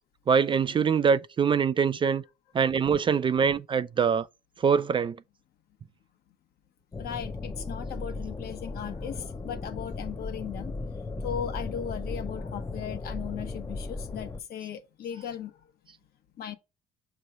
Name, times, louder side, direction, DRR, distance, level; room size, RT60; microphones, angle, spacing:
voice 1, 0.3-2.2 2.5-4.3 4.6-5.2, right 6 dB, 30° right, 0.3 m, -24 dB
sound 1, 6.9-14.4, left 3 dB, 20° left, 0.6 m, -36 dB
voice 2, 7.0-10.7 11.2-15.7 16.4-16.5, left 9 dB, 65° left, 1.0 m, -37 dB
6.4 x 3.1 x 5.4 m
cardioid pair, 110°, 17 cm